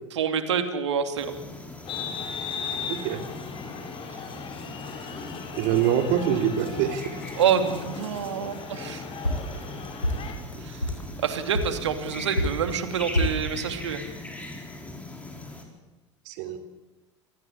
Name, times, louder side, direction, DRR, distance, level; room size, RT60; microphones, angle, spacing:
voice 1, 0.2-1.3 7.3-9.0 10.6-10.9 11.2-14.0, right 7 dB, 65° right, 8 dB, 2.8 m, -27 dB
sound 1, 1.2-15.6, left 2 dB, 10° left, 5.0 m, -40 dB
sound 2, 1.8-10.3, left 6 dB, 35° left, 4.4 m, -37 dB
voice 2, 2.9-3.2 5.5-7.2 16.2-16.6, right 9 dB, 50° right, 8 dB, 3.2 m, -25 dB
sound 3, 9.2-11.1 11.5-13.5, equal, 90° left, 4.6 m, -27 dB
27.0 x 19.0 x 8.4 m, 1.1 s
figure-of-eight pair, 80°, 16 cm